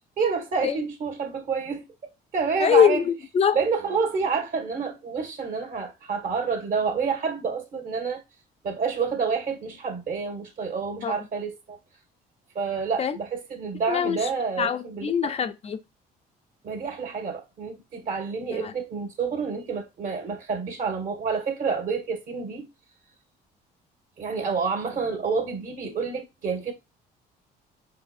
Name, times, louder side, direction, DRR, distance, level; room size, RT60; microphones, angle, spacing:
voice 1, 0.2-1.8 2.3-3.0 3.5-8.2 8.6-11.8 12.6-15.3 16.6-22.7 24.2-26.7, right 5 dB, 55° right, 1.8 m, -28 dB
voice 2, 2.6-3.6 11.0-11.3 13.0-13.2 13.9-14.3 14.6-15.8 18.5-18.7, left 7 dB, 35° left, 0.5 m, -23 dB
4.8 x 4.4 x 2.5 m
cardioid pair, 110°, 17 cm